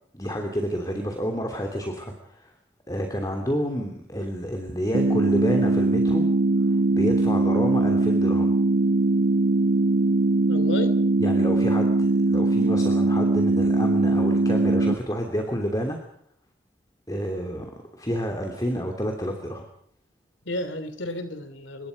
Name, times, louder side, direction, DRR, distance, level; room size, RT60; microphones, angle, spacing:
voice 1, 0.1-2.5 2.9-6.3 6.9-8.5 11.2-16.0 17.1-19.6, equal, 20° left, 3 dB, 3.0 m, -29 dB
sound 1, 4.9-14.9, right 2 dB, 65° right, 1.1 m, -21 dB
voice 2, 10.5-11.0 20.4-21.9, left 1 dB, 90° left, 11 dB, 3.2 m, -32 dB
27.0 x 23.0 x 5.3 m, 0.64 s
head